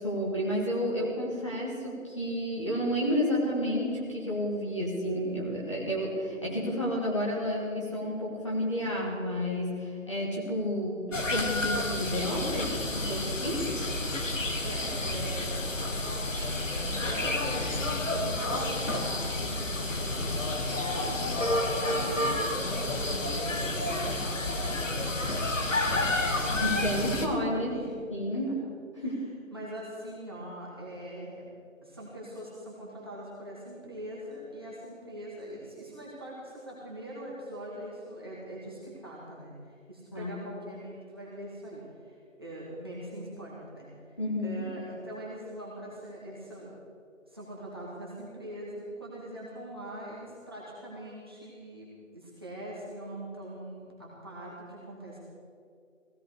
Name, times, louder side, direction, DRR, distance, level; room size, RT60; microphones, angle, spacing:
voice 1, 0.0-13.6 26.6-27.8 28.1-28.5 29.0-29.3 40.1-40.3 44.2-44.6, equal, 20° left, -5 dB, 1.9 m, -31 dB
sound 1, 11.1-27.3, left 2 dB, 70° left, 1.9 m, -30 dB
voice 2, 14.6-15.7 17.1-21.3 21.8-24.2 25.2-26.8 27.1-27.9 28.9-29.1 29.5-31.5 31.8-39.5 39.9-44.2 44.4-46.7 47.2-55.2, right 1 dB, 20° right, -6 dB, 1.8 m, -42 dB
16.0 x 15.5 x 4.8 m, 2.2 s
figure-of-eight pair, 175°, 40 cm